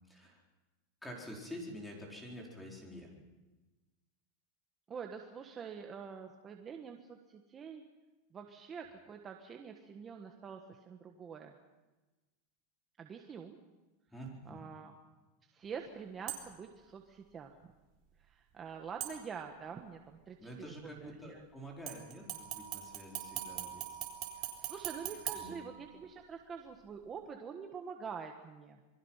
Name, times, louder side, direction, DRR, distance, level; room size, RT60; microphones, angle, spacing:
voice 1, 0.1-0.4 1.0-3.1 14.1-14.6 20.4-24.0 25.3-25.6, equal, 5° left, -1 dB, 4.5 m, -47 dB
voice 2, 4.9-7.8 8.3-11.5 13.0-13.6 14.4-15.0 15.5-17.5 18.2-20.5 20.8-21.4 24.4-28.8, right 6 dB, 20° right, 3 dB, 1.4 m, -46 dB
sound 1, 16.3-16.7 19.0-19.7 21.9-26.2 26.7-26.8, right 12 dB, 40° right, 3.9 m, -42 dB
27.5 x 22.0 x 5.7 m, 1.1 s
supercardioid pair, 160°, 0 cm